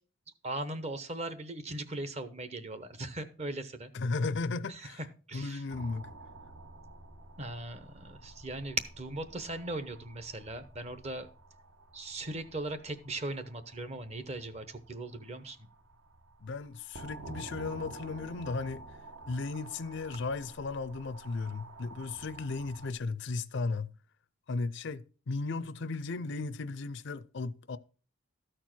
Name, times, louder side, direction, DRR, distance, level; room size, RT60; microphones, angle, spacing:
voice 1, 0.4-3.9 4.7-4.8 5.3-5.6 7.4-11.3 11.9-15.6, right 2 dB, 30° right, 0.9 m, -38 dB
voice 2, 3.9-5.0 5.3-6.1 16.4-18.8 19.3-24.0 24.5-27.8, left 3 dB, 55° left, 0.5 m, -35 dB
sound 1, 5.7-22.9, right 2 dB, 65° right, 1.2 m, -50 dB
13.0 x 4.5 x 6.0 m
head